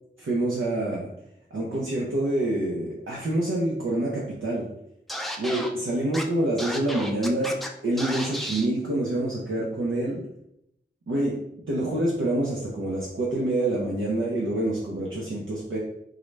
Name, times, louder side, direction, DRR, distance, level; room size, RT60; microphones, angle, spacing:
voice 1, 0.2-1.1 1.5-4.7 5.4-7.6 7.8-10.2 11.1-11.4 11.7-15.8, right 1 dB, 85° right, -4 dB, 0.6 m, -26 dB
Scratching (performance technique), 5.1-5.7 6.1-6.2 6.6-7.7 8.0-8.7, equal, ahead, 0.4 m, -33 dB
3.6 x 2.1 x 3.2 m, 0.79 s
wide cardioid pair, 55°, 20 cm